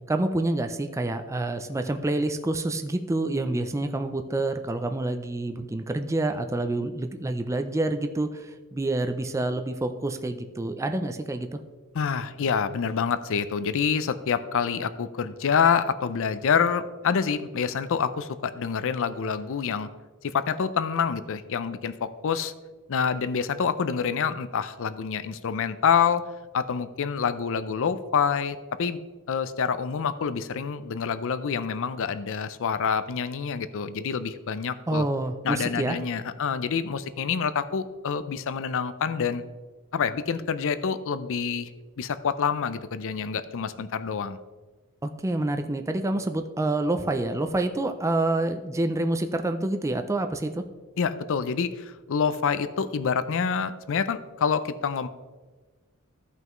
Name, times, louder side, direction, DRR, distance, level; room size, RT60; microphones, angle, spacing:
voice 1, 0.1-11.6 34.9-36.0 45.0-50.6, right 2 dB, 15° right, 7 dB, 0.4 m, -27 dB
voice 2, 11.9-19.9 20.2-22.5 22.9-26.2 26.5-29.0 29.3-35.1 35.4-39.4 39.9-41.7 42.0-44.4 51.0-55.1, left 6 dB, 65° left, 13 dB, 0.5 m, -27 dB
14.5 x 5.6 x 3.1 m, 1.3 s
head